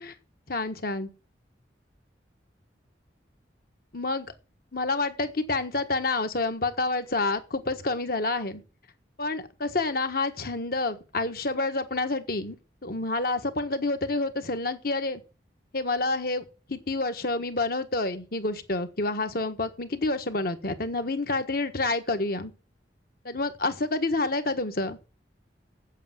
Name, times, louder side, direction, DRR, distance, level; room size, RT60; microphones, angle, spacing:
voice 1, 0.5-1.1 3.9-4.3 4.7-8.6 9.2-12.6 12.8-15.2 15.7-22.5 23.2-25.0, left 2 dB, 55° left, 8 dB, 1.4 m, -28 dB
8.2 x 8.1 x 7.7 m, 0.33 s
head